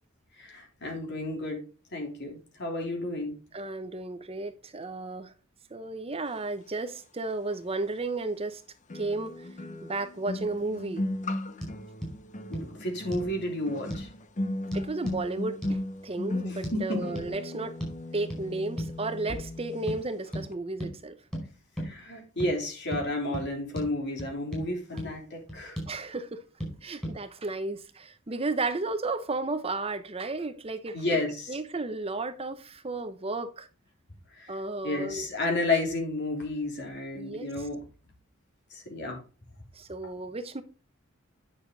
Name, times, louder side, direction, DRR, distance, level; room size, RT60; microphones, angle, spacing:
voice 1, 0.4-1.6 1.9-3.3 12.5-14.1 16.5-17.0 21.8-25.8 30.9-31.6 34.4-34.5 34.8-37.8 38.7-39.2, left 2 dB, 60° left, 3.6 m, -31 dB
voice 2, 3.5-5.3 5.7-8.6 8.9-9.3 9.8-11.0 14.7-17.8 18.1-21.2 25.9-26.4 26.8-31.2 31.5-33.7 34.5-35.3 37.1-37.5 39.7-40.6, right 3 dB, 30° right, 0.8 m, -33 dB
sound 1, 7.5-7.6 8.9-20.0 20.2-20.5, left 1 dB, 40° left, 0.8 m, -36 dB
sound 2, 11.6-11.7 12.0-12.1 12.5-12.7 13.1-13.3 13.9-14.1 14.7-15.2 15.6-15.8 16.6-16.8 17.2-17.3 17.8-18.0 18.3-18.4 18.8-19.0 19.3-19.5 19.9-20.0 20.3-20.5 20.8-20.9 21.3-21.5 21.8-21.9 22.4-22.5 22.9-23.1 23.3-23.5 23.8-23.9 24.2-24.7 25.0-25.1 25.5-25.9 26.6-26.7 27.0-27.2, equal, 5° left, 4.8 m, -35 dB
9.5 x 6.4 x 4.0 m
head